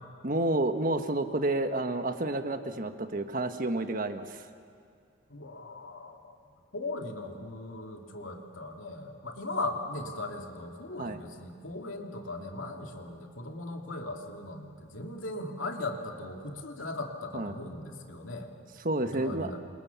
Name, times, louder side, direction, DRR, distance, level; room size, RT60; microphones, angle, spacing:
voice 1, 0.2-4.4 11.0-11.2 17.3-17.5 18.8-19.5, right 2 dB, 45° right, 7 dB, 1.4 m, -30 dB
voice 2, 5.3-6.4 6.7-18.5 19.0-19.6, left 2 dB, 80° left, 2 dB, 2.8 m, -38 dB
28.5 x 26.5 x 7.2 m, 2.3 s
head